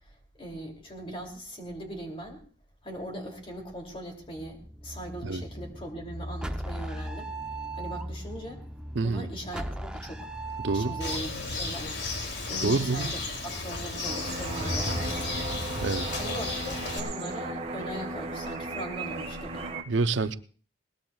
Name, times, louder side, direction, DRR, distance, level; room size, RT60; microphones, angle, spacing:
voice 1, 0.4-2.4 2.8-7.3 7.7-8.6 9.0-10.3 10.7-11.9 12.5-15.5 16.2-19.7, equal, 30° left, 2.7 m, -40 dB
sound 1, 4.3-11.3, right 1 dB, 5° right, 0.6 m, -38 dB
voice 2, 9.0-9.3 10.6-10.9 12.6-13.1 15.8-16.0 19.9-20.3, right 3 dB, 80° right, 0.6 m, -27 dB
Bird, 11.0-17.0, left 2 dB, 65° left, 2.8 m, -33 dB
sound 2, 14.0-19.8, right 2 dB, 35° right, 1.4 m, -36 dB
21.0 x 19.0 x 2.3 m
head